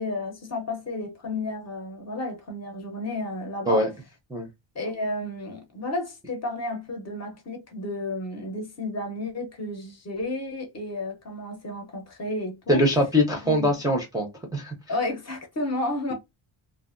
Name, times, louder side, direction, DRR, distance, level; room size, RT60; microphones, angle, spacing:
voice 1, 0.0-3.9 4.7-12.8 13.4-13.7 14.9-16.1, left 2 dB, 35° left, 0.7 m, -32 dB
voice 2, 12.7-14.7, left 1 dB, 10° right, 0.5 m, -23 dB
2.7 x 2.4 x 2.5 m
wide cardioid pair, 160°, 47 cm